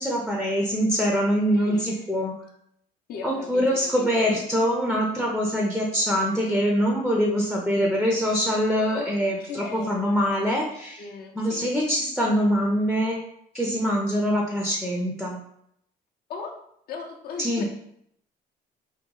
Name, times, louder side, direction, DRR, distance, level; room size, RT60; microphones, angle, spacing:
voice 1, 0.0-2.3 3.2-11.0 11.4-13.2 13.5-15.4 17.4-17.6, equal, ahead, -1 dB, 0.5 m, -24 dB
voice 2, 1.5-2.1 3.1-4.4 8.9-9.1 9.4-10.0 11.0-11.7 16.3-16.6 16.9-17.6, left 5 dB, 65° left, 2 dB, 0.7 m, -37 dB
2.9 x 2.1 x 3.8 m, 0.72 s
cardioid pair, 110°, 17 cm